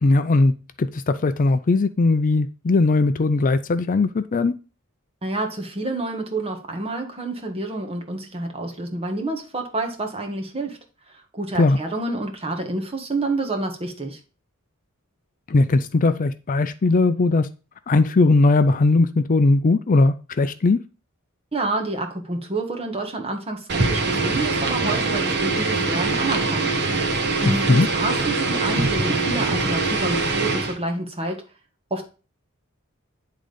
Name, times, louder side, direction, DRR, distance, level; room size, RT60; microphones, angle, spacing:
voice 1, 0.0-4.5 11.6-11.8 15.5-17.5 17.9-20.8 27.7-27.9, left 3 dB, 40° left, 0.4 m, -19 dB
voice 2, 5.2-10.8 11.3-14.2 21.5-26.7 27.4-31.4 31.9-32.1, right 2 dB, 30° right, 1.7 m, -28 dB
sound 1, 23.7-30.8, right 3 dB, 55° right, 1.4 m, -23 dB
10.0 x 3.8 x 5.1 m
head